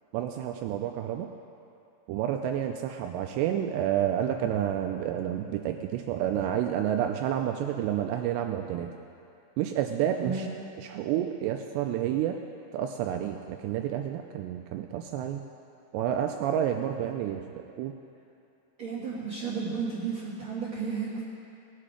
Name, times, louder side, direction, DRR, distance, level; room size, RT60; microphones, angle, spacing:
voice 1, 0.1-1.3 2.1-8.9 9.6-10.5 10.9-12.4 12.7-15.4 15.9-17.9, right 10 dB, 85° right, 4 dB, 2.4 m, -29 dB
voice 2, 18.8-21.2, right 5 dB, 65° right, -7 dB, 1.7 m, -33 dB
19.0 x 7.6 x 5.0 m, 2.6 s
omnidirectional pair, 5.4 m